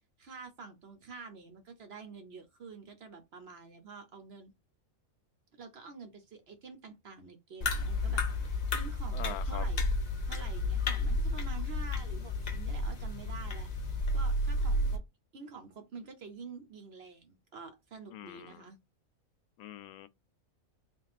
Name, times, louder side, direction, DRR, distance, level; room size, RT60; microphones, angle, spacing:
voice 1, 0.2-4.5 5.6-9.8 10.2-15.0 15.3-18.8, right 4 dB, 50° right, 0.9 m, -48 dB
sound 1, 7.6-15.0, left 2 dB, 40° left, 0.7 m, -32 dB
voice 2, 9.1-9.7 18.1-18.6 19.6-20.1, left 12 dB, 85° left, 1.0 m, -43 dB
3.7 x 2.3 x 4.0 m
omnidirectional pair, 1.5 m